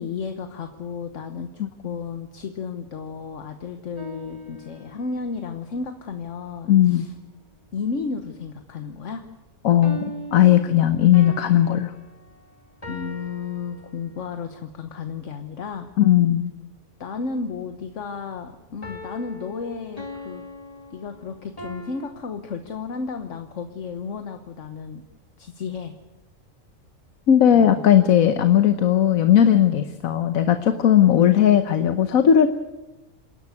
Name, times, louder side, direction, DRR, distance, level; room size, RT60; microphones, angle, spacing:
voice 1, 0.0-7.1 7.7-9.2 12.9-15.9 17.0-20.4 20.9-25.0 25.4-25.9 27.5-27.8 31.1-31.3, left 5 dB, 65° left, 7 dB, 1.5 m, -33 dB
sound 1, 4.0-5.3 9.8-14.4 18.8-22.1, equal, 25° left, 2.2 m, -40 dB
voice 2, 6.7-7.0 9.6-10.0 10.3-11.9 16.0-16.5 27.3-32.5, left 10 dB, 85° left, 9 dB, 1.4 m, -17 dB
27.5 x 11.5 x 9.7 m, 1.1 s
omnidirectional pair, 1.4 m